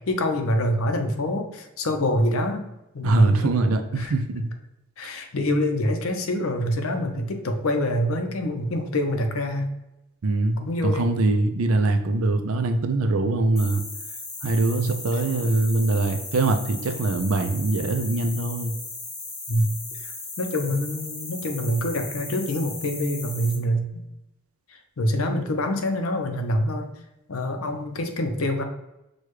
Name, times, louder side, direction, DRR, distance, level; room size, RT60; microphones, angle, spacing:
voice 1, 0.1-2.6 2.9-3.5 4.0-4.1 5.0-9.7 10.6-11.1 14.7-14.9 19.5-19.7 20.0-24.0 25.0-26.9 27.3-28.6, left 1 dB, 70° left, 5 dB, 0.6 m, -25 dB
voice 2, 3.0-4.5 10.2-13.8 14.4-18.7, right 2 dB, 70° right, 7 dB, 0.5 m, -23 dB
sound 1, 13.6-23.6, left 3 dB, 30° left, 0.8 m, -37 dB
6.4 x 2.3 x 3.1 m, 0.92 s
head